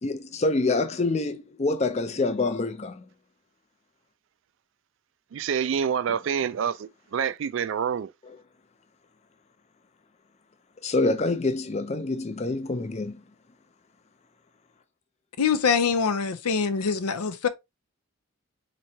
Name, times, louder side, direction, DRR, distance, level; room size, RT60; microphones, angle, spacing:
voice 1, 0.0-3.1 8.3-8.4 10.8-13.2, left 2 dB, 30° left, 0.4 m, -26 dB
voice 2, 5.3-8.1, right 7 dB, 55° right, 0.3 m, -27 dB
voice 3, 15.4-17.5, left 6 dB, 90° left, 0.6 m, -24 dB
4.4 x 3.1 x 2.7 m
head